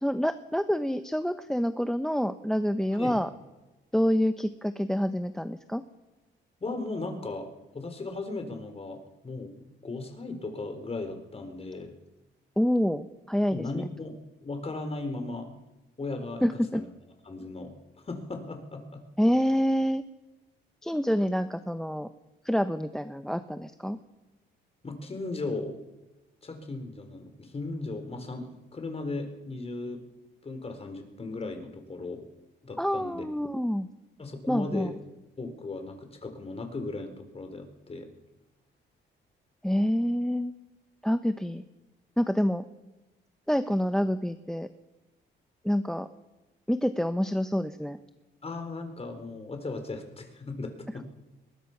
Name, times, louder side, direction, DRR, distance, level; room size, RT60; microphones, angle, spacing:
voice 1, 0.0-3.3 3.9-5.8 12.6-13.8 16.4-16.8 19.2-20.0 20.8-22.1 22.4-24.0 32.8-33.9 34.5-34.9 39.6-40.5 41.0-41.6 42.2-42.6 43.5-44.7 45.6-46.1 46.7-48.0, equal, 5° left, 10 dB, 1.0 m, -27 dB
voice 2, 6.6-9.0 9.2-9.5 9.8-11.9 13.5-14.2 14.4-15.5 16.0-16.9 17.2-17.7 18.0-19.0 24.8-25.7 26.4-30.0 30.4-32.3 32.6-33.3 34.2-34.9 35.4-38.1 48.4-51.0, left 3 dB, 30° left, 6 dB, 4.3 m, -36 dB
22.0 x 21.0 x 6.0 m, 1.1 s
cardioid pair, 90°, 20 cm